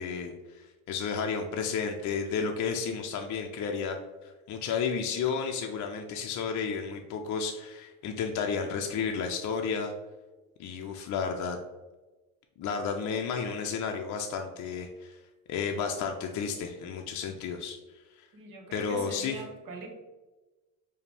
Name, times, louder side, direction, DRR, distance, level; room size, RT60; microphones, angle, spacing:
voice 1, 0.0-4.0 4.2-9.9 10.6-11.6 12.6-15.2 15.5-17.8 18.2-18.3 18.7-19.4, left 6 dB, 45° left, 3 dB, 0.5 m, -32 dB
voice 2, 18.3-20.0, right 2 dB, 50° right, 2 dB, 1.1 m, -42 dB
4.8 x 2.2 x 3.3 m, 1.2 s
supercardioid pair, 70°, 43 cm